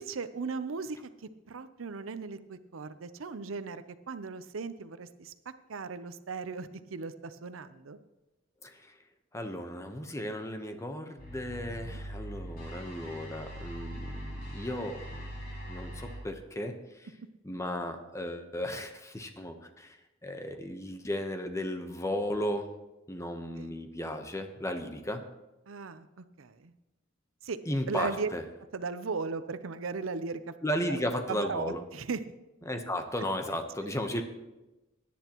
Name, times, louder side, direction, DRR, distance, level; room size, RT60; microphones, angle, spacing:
voice 1, 0.0-5.3 5.7-8.0 11.8-12.0 23.6-23.8 25.7-26.7 27.4-27.6 27.9-28.3 28.7-30.5 30.9-31.0 31.3-32.2, right 4 dB, 90° right, 12 dB, 0.7 m, -37 dB
voice 2, 8.6-9.0 9.3-15.3 15.7-17.1 17.4-20.0 20.2-22.7 23.1-25.2 27.7-28.4 30.6-31.8 32.7-34.2, left 1 dB, 15° left, 6 dB, 0.9 m, -35 dB
sound 1, 11.2-16.2, right 1 dB, 50° left, 4.6 m, -41 dB
17.0 x 10.0 x 3.0 m, 1.0 s
head